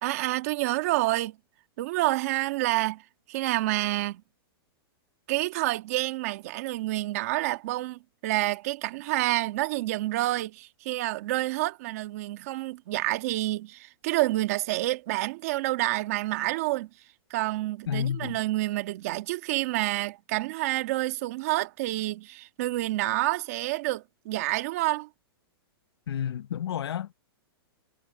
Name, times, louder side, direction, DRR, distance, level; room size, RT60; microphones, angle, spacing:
voice 1, 0.0-1.4 1.8-3.0 3.3-4.2 5.3-16.9 17.3-25.1, right 18 dB, 35° right, 1.8 m, -28 dB
voice 2, 17.9-18.4 26.1-27.2, left 9 dB, 85° left, 1.0 m, -31 dB
supercardioid pair, 175°, 13 cm